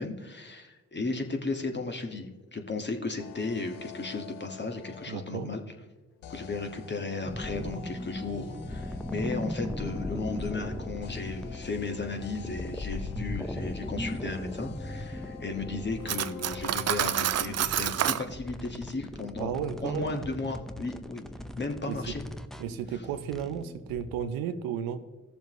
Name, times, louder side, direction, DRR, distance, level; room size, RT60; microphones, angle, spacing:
voice 1, 0.0-5.6 6.3-19.5 19.8-21.2 21.6-22.2 22.9-23.0, left 3 dB, 30° left, 4 dB, 1.7 m, -35 dB
sound 1, 3.2-5.5 6.2-17.5, left 9 dB, 80° left, 0.7 m, -47 dB
voice 2, 5.1-5.5 19.4-20.3 21.9-22.0 22.6-25.0, right 8 dB, 80° right, 10 dB, 0.7 m, -33 dB
sound 2, 7.2-24.2, left 1 dB, ahead, 0.8 m, -38 dB
Cutlery silverware, 16.1-18.2, right 11 dB, 50° right, 0.5 m, -28 dB
16.5 x 7.0 x 3.1 m, 1.2 s
hypercardioid pair, 45°, 34 cm